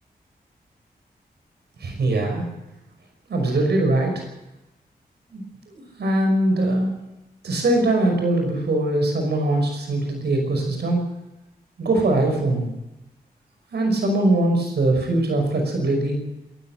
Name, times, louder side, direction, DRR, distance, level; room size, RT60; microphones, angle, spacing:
voice 1, 1.8-2.5 3.3-4.2 5.3-6.9 7.4-11.0 11.8-12.7 13.7-16.2, right 2 dB, 85° right, 3 dB, 5.7 m, -22 dB
27.0 x 12.0 x 7.9 m, 0.94 s
cardioid pair, 55°, 17 cm